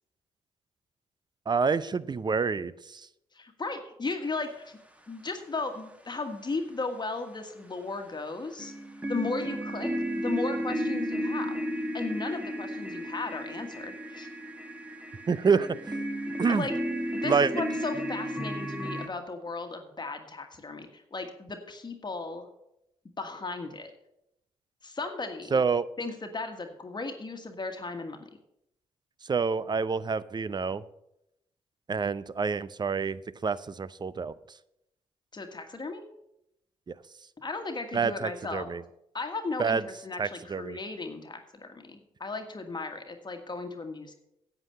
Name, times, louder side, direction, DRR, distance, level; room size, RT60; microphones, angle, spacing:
voice 1, 1.5-3.1 15.3-15.8 16.4-16.7 17.2-17.5 25.5-25.9 29.3-30.8 31.9-34.3 36.9-37.0 37.9-38.8 39.6-39.8 40.2-40.8, right 5 dB, 30° right, 17 dB, 0.6 m, -27 dB
voice 2, 3.3-4.8 5.1-8.7 9.1-9.9 10.2-11.7 11.9-14.3 16.5-16.7 17.1-22.5 23.2-23.9 24.8-25.6 26.0-28.3 35.3-36.0 37.4-38.7 39.1-44.2, left 3 dB, 35° left, 5 dB, 1.5 m, -36 dB
sound 1, 8.6-19.1, equal, 10° right, 1.4 m, -33 dB
8.9 x 8.1 x 6.5 m, 0.82 s
hypercardioid pair, 45°, 14 cm